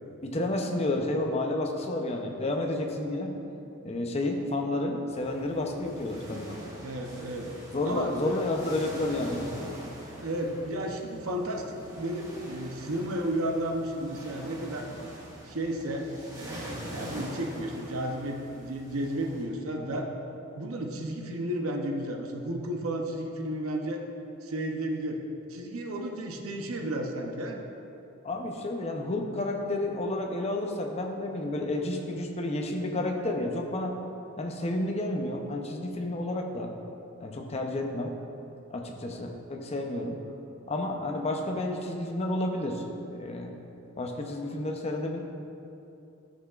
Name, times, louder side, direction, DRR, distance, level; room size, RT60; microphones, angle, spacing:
voice 1, 0.2-3.4 3.8-6.6 7.7-9.5 19.8-20.0 28.2-34.0 34.4-36.8 37.2-38.1 38.7-40.2 40.7-43.5 44.0-45.2, left 1 dB, 30° left, 2 dB, 0.6 m, -31 dB
sound 1, 5.1-19.4, equal, 15° right, 1.2 m, -44 dB
voice 2, 6.8-7.5 7.8-8.4 10.2-11.7 12.0-14.9 15.5-20.1 20.6-24.0 24.4-25.2 25.5-27.6, right 1 dB, 90° right, 2 dB, 0.7 m, -33 dB
12.0 x 5.7 x 2.4 m, 2.8 s
head